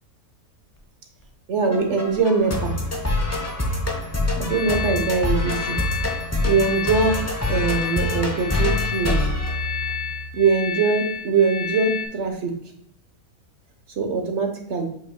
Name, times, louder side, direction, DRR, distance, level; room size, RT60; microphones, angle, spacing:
voice 1, 1.5-2.8 4.4-5.8 6.4-7.2 7.5-9.3 10.3-12.5 14.0-14.9, right 4 dB, 50° right, 4 dB, 1.3 m, -22 dB
sound 1, 1.7-10.3, left 2 dB, 15° left, 0.7 m, -26 dB
sound 2, 4.5-12.1, left 7 dB, 45° left, 1.7 m, -31 dB
7.6 x 5.5 x 2.2 m, 0.72 s
omnidirectional pair, 1.6 m